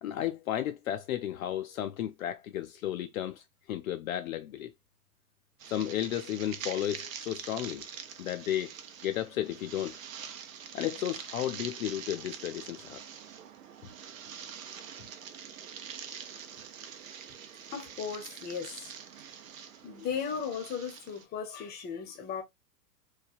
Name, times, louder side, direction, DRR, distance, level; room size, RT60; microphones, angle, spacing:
voice 1, 0.0-4.7 5.7-7.9 8.2-8.7 9.0-10.0 10.7-13.0, left 12 dB, 60° left, 0.5 m, -33 dB
sound 1, 5.6-21.2, right 8 dB, 55° right, 0.7 m, -45 dB
voice 2, 17.7-18.9 19.8-22.4, left 7 dB, 20° left, 0.8 m, -36 dB
3.2 x 2.1 x 2.4 m
figure-of-eight pair, 100°, 47 cm